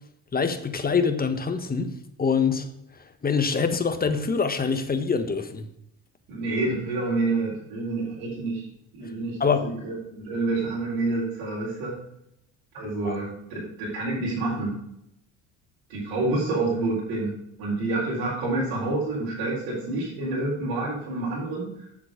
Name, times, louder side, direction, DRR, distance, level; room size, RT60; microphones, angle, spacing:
voice 1, 0.3-1.9 2.2-2.7 3.2-5.7 9.4-9.7 13.0-13.2, left 5 dB, 25° left, 8 dB, 1.4 m, -24 dB
voice 2, 6.3-8.7 8.9-12.0 12.7-14.8 15.9-21.9, right 2 dB, 80° right, -8 dB, 4.2 m, -28 dB
7.7 x 7.6 x 5.1 m, 0.77 s
supercardioid pair, 80°, 36 cm